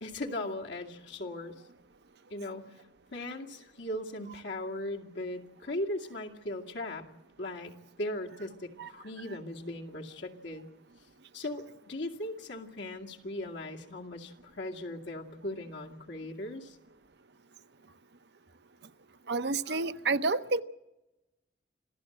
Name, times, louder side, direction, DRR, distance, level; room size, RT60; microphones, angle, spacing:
voice 1, 0.0-1.5 2.3-2.7 3.1-7.0 7.4-7.7 8.0-10.7 11.3-16.8, left 1 dB, 75° left, 2.3 m, -38 dB
voice 2, 19.3-20.6, right 3 dB, 65° right, 0.8 m, -29 dB
26.5 x 15.5 x 7.9 m
head